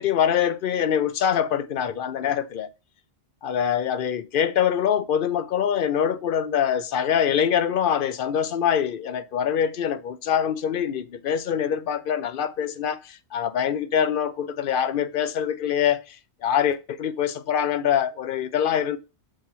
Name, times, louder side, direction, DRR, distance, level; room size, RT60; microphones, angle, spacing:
voice 1, 0.0-2.7 3.4-16.2 16.4-19.0, left 8 dB, 60° left, 0.8 m, -24 dB
7.3 x 3.1 x 6.0 m
omnidirectional pair, 1.1 m